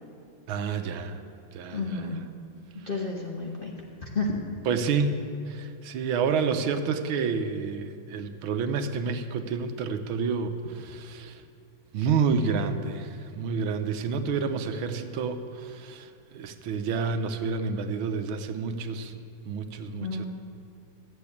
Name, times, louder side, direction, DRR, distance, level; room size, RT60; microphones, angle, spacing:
voice 1, 0.5-1.2 1.5-2.0 4.7-5.2 5.5-11.4 11.9-19.2 19.5-20.3, right 5 dB, 80° right, 8 dB, 1.6 m, -29 dB
voice 2, 1.7-2.2 2.7-3.7 4.0-4.4 20.0-20.3, left 3 dB, 35° left, -2 dB, 1.0 m, -31 dB
12.5 x 7.7 x 8.4 m, 2.4 s
omnidirectional pair, 2.3 m